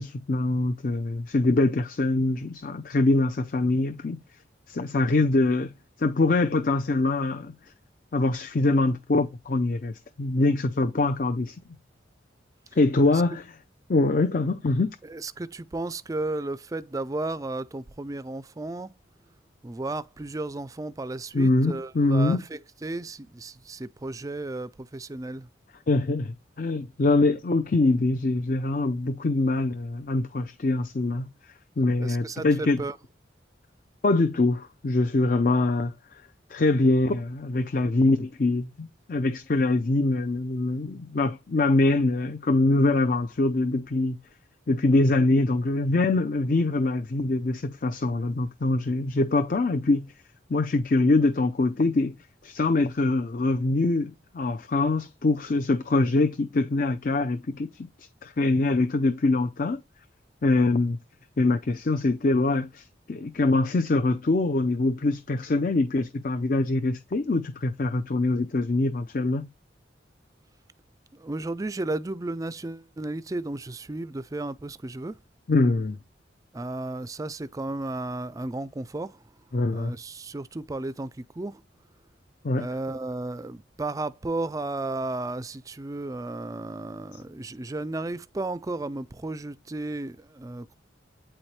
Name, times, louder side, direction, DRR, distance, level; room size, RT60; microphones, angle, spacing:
voice 1, 0.0-4.2 4.7-5.7 6.0-7.5 8.1-11.6 12.8-13.4 13.9-15.0 21.3-22.4 25.9-31.3 31.8-32.8 34.0-36.2 36.5-44.2 44.7-50.1 50.5-52.1 52.4-59.8 60.4-61.0 61.4-69.5 75.5-76.0 79.5-79.9 82.4-82.7, left 2 dB, 45° left, 0.5 m, -24 dB
voice 2, 15.0-18.9 19.6-25.5 32.0-33.0 71.1-75.2 76.5-79.3 79.7-81.6 82.5-90.7, right 2 dB, 20° right, 0.3 m, -34 dB
8.7 x 4.4 x 3.2 m
head